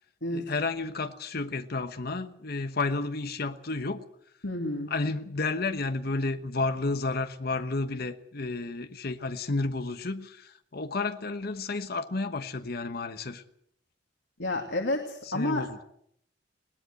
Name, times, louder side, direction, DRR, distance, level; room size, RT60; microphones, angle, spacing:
voice 1, 0.3-4.0 4.9-13.4 15.3-15.8, left 3 dB, 55° left, 8 dB, 1.2 m, -31 dB
voice 2, 4.4-4.9 14.4-15.7, left 2 dB, 80° left, 2 dB, 2.6 m, -30 dB
21.5 x 18.5 x 7.8 m, 0.71 s
head